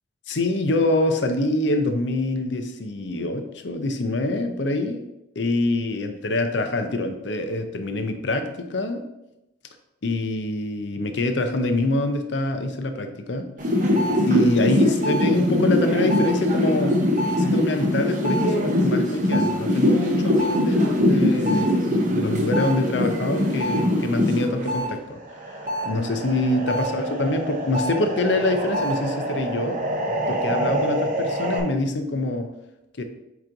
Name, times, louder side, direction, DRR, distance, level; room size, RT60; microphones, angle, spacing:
voice 1, 0.3-5.0 5.4-9.1 10.0-13.5 13.8-13.9 14.3-17.1 17.4-25.2 25.8-29.8 30.3-32.5 33.0-33.1, left 2 dB, 70° left, 7 dB, 0.7 m, -25 dB
sound 1, 13.6-24.9 25.2-31.6, left 1 dB, 40° right, 1.0 m, -23 dB
7.9 x 3.1 x 3.9 m, 0.90 s
head